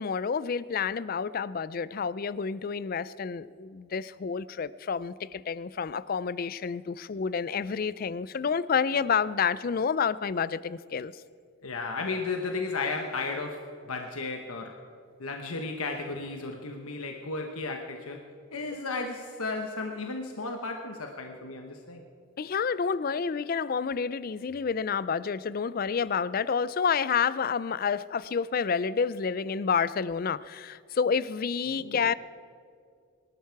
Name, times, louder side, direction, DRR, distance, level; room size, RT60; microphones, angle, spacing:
voice 1, 0.0-11.1 22.4-32.1, left 6 dB, 40° left, 18 dB, 0.3 m, -29 dB
voice 2, 11.6-14.8 15.2-18.2 18.5-22.1 31.7-32.0, left 3 dB, 85° left, 3 dB, 1.1 m, -34 dB
22.5 x 12.0 x 4.7 m, 2.4 s
head